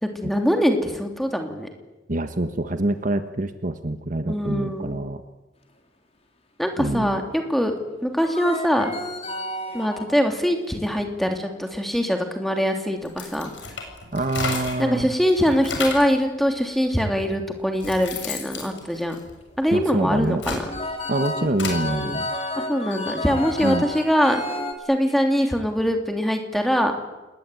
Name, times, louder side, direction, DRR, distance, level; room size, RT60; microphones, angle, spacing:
voice 1, 0.0-1.7 4.3-5.0 6.6-7.7 8.0-8.9 9.7-13.5 14.8-19.1 19.6-20.6 22.6-24.4 24.9-27.0, equal, ahead, 4 dB, 3.1 m, -23 dB
voice 2, 2.1-5.2 6.8-7.2 14.1-15.1 19.7-20.4 21.1-22.3 23.6-23.9, right 2 dB, 45° right, 9 dB, 1.3 m, -26 dB
sound 1, 6.9-7.4 8.2-10.2 10.7-11.0 11.4-11.7 12.1-12.2 12.5-12.6 16.6-16.9 17.4-17.5 17.6-17.9 18.7-19.0 20.4-24.7, left 1 dB, 35° left, 3.9 m, -31 dB
sound 2, 13.0-14.9 15.3-16.2 17.0-17.1 17.5-19.7 20.2-21.8, left 4 dB, 75° left, 6.9 m, -32 dB
28.5 x 20.0 x 9.3 m, 1.1 s
head